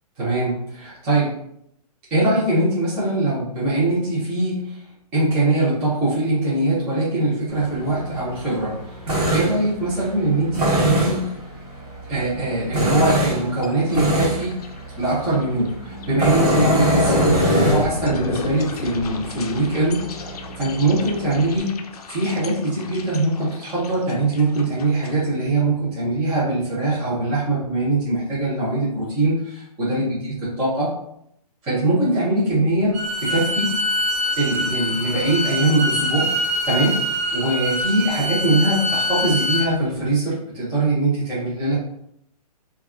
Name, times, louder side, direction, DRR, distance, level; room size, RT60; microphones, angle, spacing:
voice 1, 0.2-1.3 2.1-4.8 5.1-8.8 9.3-11.3 12.1-14.6 15.0-15.7 16.1-20.0 20.6-21.8 22.1-30.9 31.6-33.8 34.4-36.3 36.6-37.0 37.3-41.7, right 2 dB, 5° right, -10 dB, 0.3 m, -22 dB
Tools, 7.5-21.6, right 1 dB, 75° right, 1.2 m, -25 dB
sound 1, 13.6-14.0 14.3-14.7 15.1-15.2 16.0-25.1, left 4 dB, 70° left, 0.4 m, -29 dB
Bowed string instrument, 32.9-39.7, left 1 dB, 45° right, 1.0 m, -24 dB
3.2 x 2.1 x 2.3 m, 0.73 s
hypercardioid pair, 165°, 20 cm